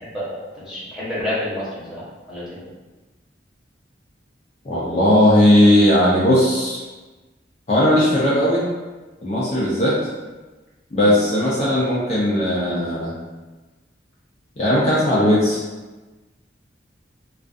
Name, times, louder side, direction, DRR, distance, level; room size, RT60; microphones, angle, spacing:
voice 1, 0.5-1.6 1.9-2.0 2.3-2.6, left 1 dB, 5° right, -11 dB, 0.9 m, -28 dB
voice 2, 4.7-6.8 7.7-8.6 9.2-9.9 10.9-13.1 14.6-15.6, left 1 dB, 35° left, -7 dB, 0.4 m, -17 dB
2.4 x 2.3 x 2.4 m, 1.2 s
head